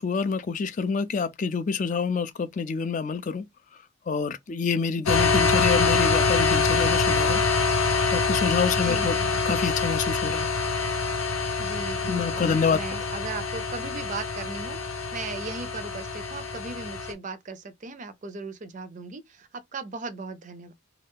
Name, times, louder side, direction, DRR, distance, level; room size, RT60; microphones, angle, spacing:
voice 1, 0.0-3.5 4.1-7.4 8.1-9.2 9.5-10.5 12.1-12.8, left 5 dB, 40° left, 0.3 m, -27 dB
sound 1, 5.1-17.1, left 4 dB, 90° left, 0.8 m, -25 dB
voice 2, 8.8-9.4 11.6-14.8 15.1-20.7, right 3 dB, 35° right, 0.4 m, -37 dB
2.7 x 2.3 x 3.5 m
head